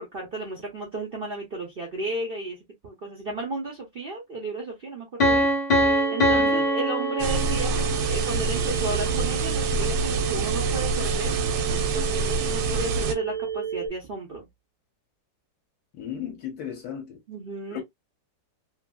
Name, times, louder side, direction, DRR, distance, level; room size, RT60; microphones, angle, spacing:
voice 1, 0.0-2.6 2.8-5.5 6.1-11.3 11.8-14.5 17.3-17.8, right 2 dB, 65° right, 0.5 m, -34 dB
Piano, 5.2-8.0, equal, 45° left, 0.5 m, -23 dB
sound 1, 5.8-13.9, right 7 dB, 5° right, 0.5 m, -32 dB
voice 2, 6.3-6.6 16.0-17.2 17.7-17.8, left 9 dB, 65° left, 1.2 m, -35 dB
sound 2, 7.2-13.1, right 4 dB, 85° right, 1.3 m, -26 dB
3.0 x 2.6 x 2.2 m
omnidirectional pair, 1.9 m